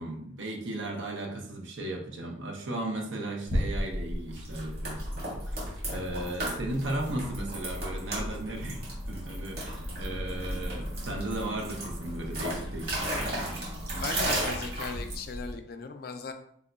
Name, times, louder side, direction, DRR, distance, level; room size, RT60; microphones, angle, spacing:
voice 1, 0.0-13.4, right 1 dB, 80° right, 1 dB, 0.8 m, -36 dB
sound 1, 3.5-15.5, right 1 dB, 50° right, 1.4 m, -34 dB
voice 2, 13.9-16.3, left 4 dB, 50° left, 7 dB, 0.4 m, -37 dB
3.5 x 2.2 x 3.8 m, 0.66 s
head